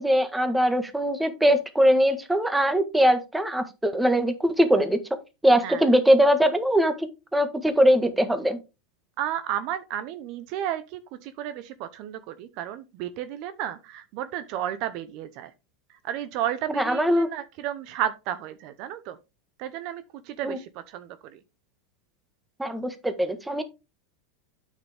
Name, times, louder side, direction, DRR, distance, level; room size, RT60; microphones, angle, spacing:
voice 1, 0.0-5.0 5.4-7.1 7.3-8.6 16.7-17.3 20.4-20.6 22.6-23.6, equal, 5° right, 1.5 m, -21 dB
voice 2, 5.6-5.9 9.2-15.5 16.0-19.2 19.6-21.4, right 11 dB, 55° right, 0.8 m, -33 dB
8.7 x 6.6 x 3.5 m
hypercardioid pair, 100°, 0 cm